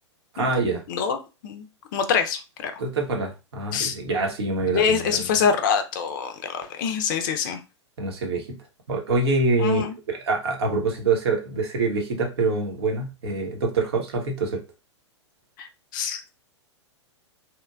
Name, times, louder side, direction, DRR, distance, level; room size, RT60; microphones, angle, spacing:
voice 1, 0.3-0.8 2.8-5.3 8.0-8.4 8.9-9.8 10.2-14.6, right 3 dB, 60° right, 2 dB, 0.8 m, -25 dB
voice 2, 0.9-1.7 1.9-2.7 3.7-4.0 4.7-7.6 9.6-9.9 15.6-16.2, left 7 dB, 45° left, 7 dB, 0.4 m, -25 dB
2.9 x 2.1 x 2.3 m, 0.29 s
figure-of-eight pair, 100°, 15 cm